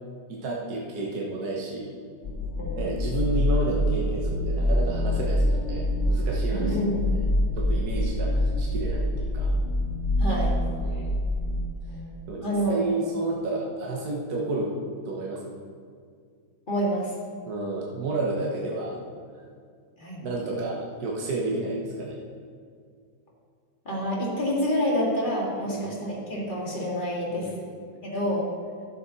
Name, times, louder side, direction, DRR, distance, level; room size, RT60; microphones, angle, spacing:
voice 1, 0.3-1.9 2.7-6.9 7.6-9.5 10.8-11.1 12.3-14.7 15.0-15.6 17.5-19.0 20.2-22.2 25.7-26.0 27.3-27.8, right 2 dB, 60° right, -2 dB, 1.5 m, -31 dB
sound 1, 2.2-11.6, left 1 dB, 40° left, 1.3 m, -25 dB
voice 2, 2.6-3.0 6.5-7.1 10.2-10.6 11.8-12.8 16.7-17.1 20.0-20.3 23.9-27.5 28.0-28.5, equal, 25° left, -4 dB, 2.1 m, -28 dB
12.0 x 7.4 x 4.1 m, 2.2 s
omnidirectional pair, 2.0 m